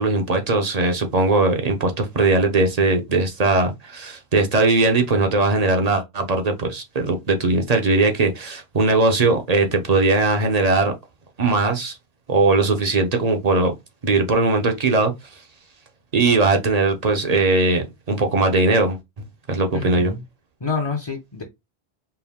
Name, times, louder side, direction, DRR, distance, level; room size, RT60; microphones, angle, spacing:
voice 1, 0.0-10.9 11.4-12.0 12.3-13.7 14.0-15.1 16.1-19.0 19.5-20.1, right 3 dB, 40° right, 0.8 m, -19 dB
voice 2, 19.7-20.2 20.6-21.4, left 4 dB, 30° left, 0.7 m, -27 dB
4.6 x 2.2 x 3.5 m
omnidirectional pair, 1.1 m